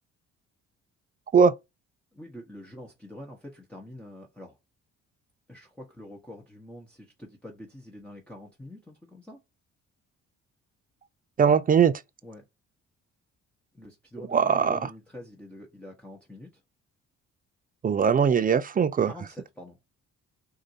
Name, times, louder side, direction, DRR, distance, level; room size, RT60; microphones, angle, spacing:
voice 1, 2.1-4.6 5.5-9.4 12.2-12.4 13.7-16.6 19.0-19.8, left 1 dB, 5° left, 1.2 m, -45 dB
voice 2, 11.4-12.0 14.3-14.8 17.8-19.1, right 6 dB, 30° right, 0.4 m, -20 dB
6.2 x 2.7 x 2.7 m
cardioid pair, 90°, 30 cm